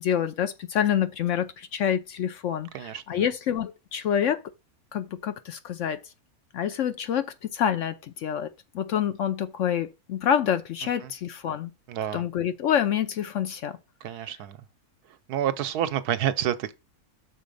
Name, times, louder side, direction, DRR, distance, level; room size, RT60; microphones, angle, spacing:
voice 1, 0.0-4.4 4.9-6.0 6.5-8.5 8.7-11.7 12.1-13.8, left 9 dB, 65° left, 0.8 m, -27 dB
voice 2, 2.7-3.2 11.0-11.1 11.9-12.2 14.0-14.6 15.3-16.7, right 10 dB, 85° right, 1.2 m, -29 dB
6.2 x 4.2 x 5.2 m
omnidirectional pair, 1.6 m